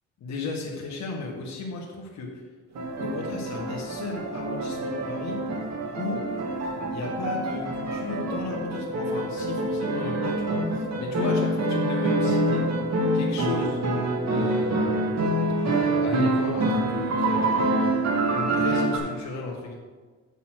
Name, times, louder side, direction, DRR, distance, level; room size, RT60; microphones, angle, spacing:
voice 1, 0.2-2.3 3.0-5.4 6.0-6.2 6.9-12.7 13.1-13.8 14.3-15.1 15.6-17.9 18.3-19.7, left 3 dB, 65° left, -1 dB, 1.5 m, -34 dB
sound 1, 2.7-19.0, right 1 dB, 60° right, 2.1 m, -26 dB
7.8 x 5.6 x 6.1 m, 1.4 s
cardioid pair, 90°, 30 cm